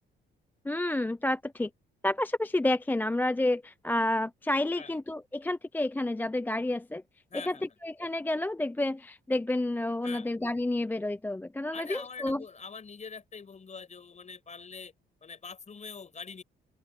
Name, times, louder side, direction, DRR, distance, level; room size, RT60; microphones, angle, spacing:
voice 1, 0.6-1.7 2.0-7.0 7.4-7.6 7.8-12.4, left 1 dB, 10° left, 0.5 m, -30 dB
voice 2, 7.3-7.6 10.0-10.3 11.7-14.9 15.2-16.4, left 5 dB, 35° left, 5.5 m, -44 dB
open air
cardioid pair, 90°, 20 cm